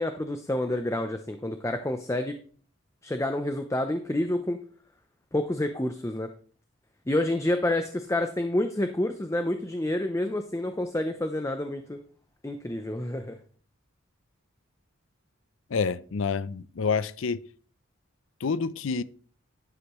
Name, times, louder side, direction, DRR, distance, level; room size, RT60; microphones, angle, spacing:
voice 1, 0.0-2.4 3.0-4.6 5.3-6.3 7.1-12.0 12.4-13.4, left 1 dB, 15° left, 0.6 m, -28 dB
voice 2, 15.7-17.4 18.4-19.0, left 5 dB, 70° left, 0.5 m, -28 dB
11.5 x 8.3 x 3.1 m
head